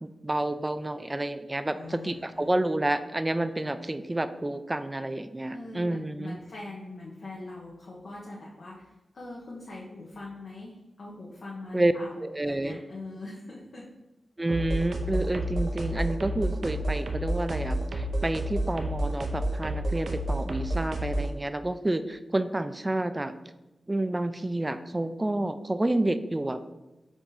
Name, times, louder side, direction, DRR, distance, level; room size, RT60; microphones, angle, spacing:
voice 1, 0.0-6.4 11.7-11.9 12.2-12.8 14.4-23.3 23.9-26.6, right 1 dB, 25° right, 11 dB, 0.3 m, -29 dB
voice 2, 1.7-2.5 5.5-13.9, left 2 dB, 75° left, -5 dB, 0.8 m, -42 dB
sound 1, 14.5-21.3, right 1 dB, 80° right, 0.5 m, -30 dB
4.8 x 2.7 x 3.7 m, 1.0 s
cardioid pair, 60°, 0 cm